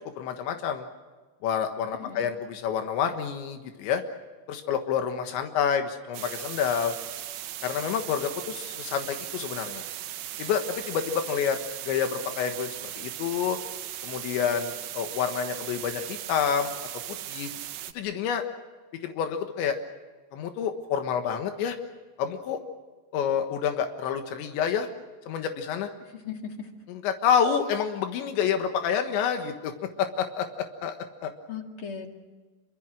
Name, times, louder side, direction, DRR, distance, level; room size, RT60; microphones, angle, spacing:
voice 1, 0.2-0.9 1.4-4.0 4.5-6.9 7.6-9.8 10.4-11.6 11.8-13.6 14.0-16.7 17.1-17.5 18.0-18.4 19.0-19.8 20.3-21.8 22.2-22.6 23.1-24.9 25.3-25.9 26.9-29.7 30.0-31.3, left 7 dB, 85° left, 6 dB, 3.8 m, -28 dB
sound 1, 6.1-17.9, right 13 dB, 80° right, 3.4 m, -38 dB
voice 2, 26.1-26.7 31.5-32.1, left 7 dB, 40° left, 4 dB, 2.2 m, -37 dB
27.5 x 24.5 x 6.4 m, 1.3 s
omnidirectional pair, 5.1 m